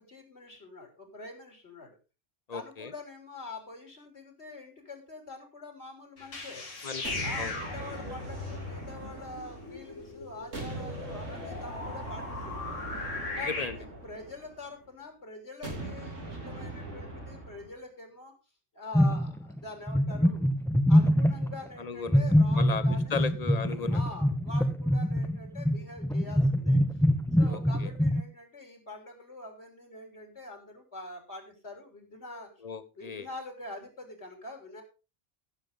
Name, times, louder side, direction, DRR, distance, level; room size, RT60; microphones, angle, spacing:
voice 1, 0.0-2.0 2.5-6.7 7.2-12.9 13.4-18.3 18.7-20.5 20.9-23.4 23.9-26.8 27.4-32.5 33.0-34.8, left 2 dB, 60° left, 3 dB, 3.8 m, -45 dB
voice 2, 2.5-2.9 6.8-7.5 13.5-13.8 21.8-24.0 27.5-27.9 32.6-33.3, left 5 dB, 35° left, 12 dB, 1.0 m, -36 dB
sound 1, 6.2-13.6, left 3 dB, 90° left, 2.5 m, -39 dB
sound 2, 7.0-10.1 10.5-14.8 15.6-17.7, right 2 dB, 90° right, 3.5 m, -41 dB
sound 3, 18.9-19.6 19.9-21.6 22.1-28.2, equal, 5° left, 0.6 m, -24 dB
17.0 x 7.4 x 3.7 m, 0.31 s
omnidirectional pair, 1.2 m